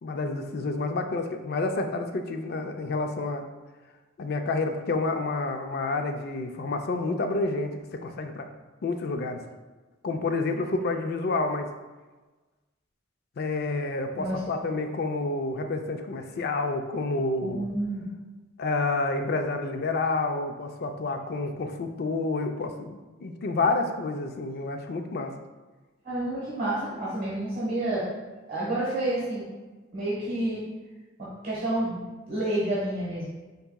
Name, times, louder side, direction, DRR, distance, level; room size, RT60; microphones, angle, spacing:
voice 1, 0.0-3.4 4.2-8.5 8.8-9.4 10.0-11.7 13.4-17.7 18.6-25.3, left 3 dB, 55° left, 6 dB, 0.4 m, -29 dB
voice 2, 17.4-18.1 26.0-28.1 28.5-29.5 29.9-30.6 31.2-32.0 32.3-33.3, right 1 dB, 45° right, -8 dB, 1.2 m, -29 dB
4.5 x 4.0 x 2.2 m, 1.2 s
head